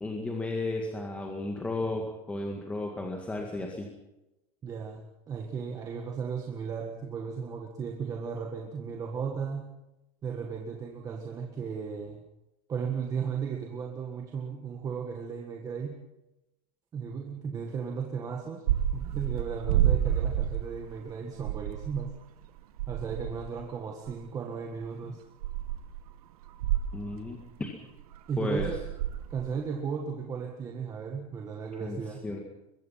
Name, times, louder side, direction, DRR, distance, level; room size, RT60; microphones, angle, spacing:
voice 1, 0.0-3.9 26.9-27.7 28.4-28.8 31.8-32.0 32.2-32.4, left 2 dB, 5° left, 1 dB, 2.0 m, -33 dB
voice 2, 4.6-9.7 10.2-12.2 12.7-16.0 16.9-18.6 18.9-22.2 22.9-25.2 28.3-28.8 29.3-32.2, right 6 dB, 15° right, 2 dB, 1.6 m, -35 dB
sound 1, 18.7-21.1 21.4-22.1 22.4-22.5 22.8-23.6 24.1-24.2 24.8-24.9 25.4-26.0 26.4-27.5 28.0-28.2 28.6-29.5, right 11 dB, 85° right, 2.1 m, -29 dB
23.0 x 22.0 x 5.8 m, 0.97 s
supercardioid pair, 175°, 19 cm